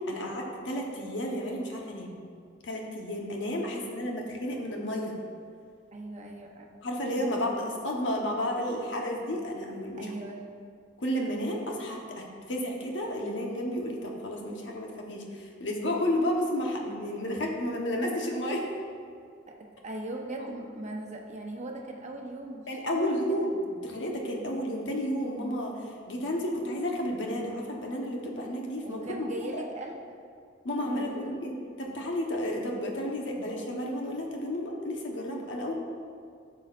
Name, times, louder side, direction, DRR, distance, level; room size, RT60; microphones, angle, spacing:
voice 1, 0.1-2.2 2.6-5.1 6.8-10.1 11.0-18.7 20.4-20.5 22.7-25.7 26.1-29.7 30.6-35.7, equal, 70° left, 0 dB, 1.1 m, -32 dB
voice 2, 3.6-4.0 5.9-6.7 7.1-7.8 10.0-10.4 19.5-19.6 19.8-23.5 28.8-30.0 30.9-31.3, right 1 dB, 40° right, 1 dB, 0.9 m, -40 dB
12.0 x 6.3 x 2.5 m, 2.2 s
head